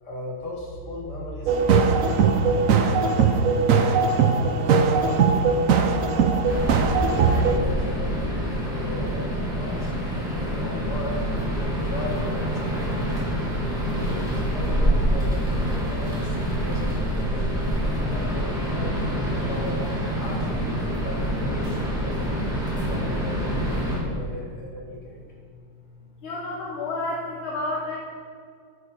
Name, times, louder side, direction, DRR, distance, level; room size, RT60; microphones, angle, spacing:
voice 1, 0.0-3.2 3.7-4.2 4.6-6.9 7.1-9.9 10.3-11.2 11.5-13.4 13.9-17.4 18.0-19.8 20.2-22.4 22.9-25.2, left 1 dB, 50° left, -2 dB, 2.3 m, -37 dB
sound 1, 1.5-7.6, right 5 dB, 75° right, 0.7 m, -20 dB
sound 2, 6.5-24.0, equal, ahead, 2.2 m, -26 dB
voice 2, 26.2-28.0, left 2 dB, 70° left, -3 dB, 1.9 m, -30 dB
10.0 x 8.6 x 4.9 m, 2.1 s
omnidirectional pair, 2.3 m